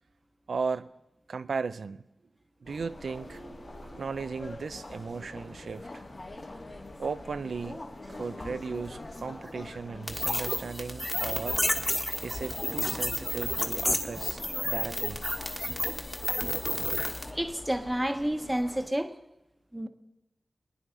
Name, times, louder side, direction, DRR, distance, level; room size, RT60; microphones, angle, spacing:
voice 1, 0.5-0.9 1.3-2.0 2.6-6.0 7.0-7.8 8.1-11.6 12.2-15.2, right 5 dB, 85° right, 0.4 m, -36 dB
sound 1, 2.7-18.9, left 2 dB, 60° left, 2.0 m, -44 dB
sound 2, 10.1-17.3, left 1 dB, 20° left, 1.4 m, -31 dB
voice 2, 17.3-19.1 19.7-19.9, right 1 dB, 15° right, 1.0 m, -30 dB
22.5 x 9.8 x 3.9 m
cardioid pair, 55°, 0 cm